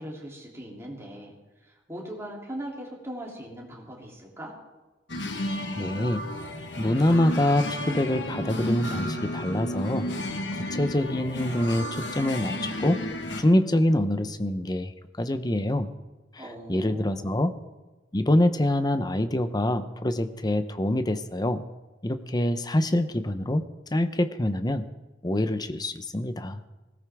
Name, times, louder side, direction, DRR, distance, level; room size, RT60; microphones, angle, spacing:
voice 1, 0.0-1.3 1.6-4.5 16.4-17.3, right 1 dB, 15° right, -3 dB, 3.1 m, -40 dB
sound 1, 5.1-13.4, left 1 dB, 70° left, 1.5 m, -32 dB
voice 2, 5.4-6.3 6.8-10.1 10.5-13.0 13.4-14.9 15.2-15.9 16.7-17.5 18.1-21.6 22.0-23.6 23.9-24.8 25.2-26.6, left 1 dB, 20° left, 10 dB, 0.7 m, -25 dB
19.5 x 17.5 x 3.6 m, 1.1 s
head